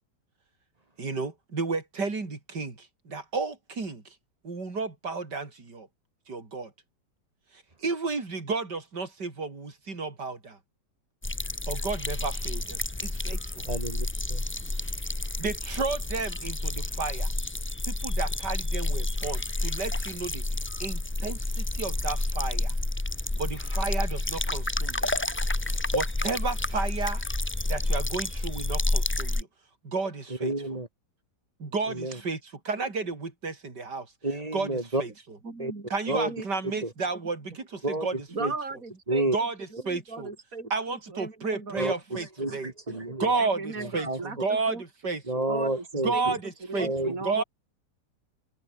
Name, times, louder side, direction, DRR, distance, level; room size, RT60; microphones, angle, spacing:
voice 1, 1.0-4.1 4.4-5.9 6.3-6.7 7.8-10.6 11.7-13.6 15.4-17.3 17.8-20.4 20.8-22.7 23.4-25.1 25.7-27.2 27.6-29.5 29.8-30.5 31.6-32.4 32.6-34.1 34.5-35.1 35.9-38.2 38.4-38.5 39.3-39.5 39.9-40.3 40.7-42.7 43.2-45.5 46.0-47.4, right 4 dB, 65° right, 4.8 m, -32 dB
sound 1, 11.2-29.4, left 2 dB, 15° left, 0.4 m, -29 dB
voice 2, 13.7-14.5 30.3-30.9 31.9-32.2 34.2-35.0 35.6-35.7 36.1-36.3 36.8-36.9 37.8-38.5 39.1-39.4 41.7-43.3 43.8-44.2 45.3-46.4 46.8-47.1, right 2 dB, 20° right, 2.0 m, -30 dB
voice 3, 35.4-36.5 38.3-39.3 39.7-42.6 42.9-44.8 45.5-45.8 46.1-47.4, right 3 dB, 50° right, 4.6 m, -38 dB
omnidirectional pair, 1.9 m